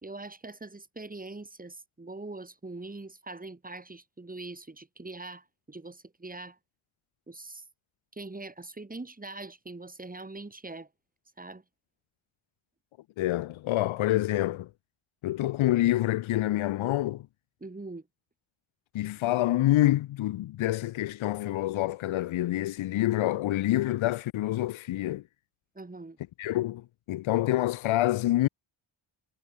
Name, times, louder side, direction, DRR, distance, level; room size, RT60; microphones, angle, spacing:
voice 1, 0.0-6.6 7.3-7.6 8.1-10.9 11.4-11.6 17.6-18.1 25.7-26.2, right 2 dB, 15° right, 3.0 m, -42 dB
voice 2, 13.2-14.7 15.2-17.3 18.9-25.2 26.4-28.5, left 15 dB, 80° left, 0.6 m, -27 dB
wide cardioid pair, 165°, 47 cm